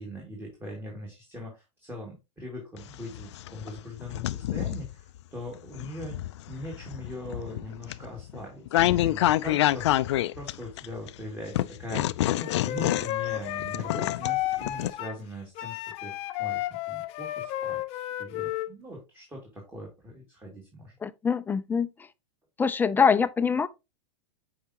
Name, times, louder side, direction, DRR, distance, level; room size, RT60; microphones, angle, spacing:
voice 1, 0.0-10.0 10.4-12.1 12.4-21.0, left 1 dB, 15° right, 2.5 m, -41 dB
sound 1, 2.8-4.9 5.5-11.1 11.5-14.9, left 14 dB, 70° left, 0.4 m, -27 dB
Wind instrument woodwind instrument, 12.4-15.2 15.6-18.7, left 14 dB, 40° left, 0.8 m, -32 dB
voice 2, 21.0-21.9 22.6-23.7, left 6 dB, 10° left, 0.5 m, -24 dB
8.4 x 4.8 x 2.9 m
hypercardioid pair, 105°, 15 cm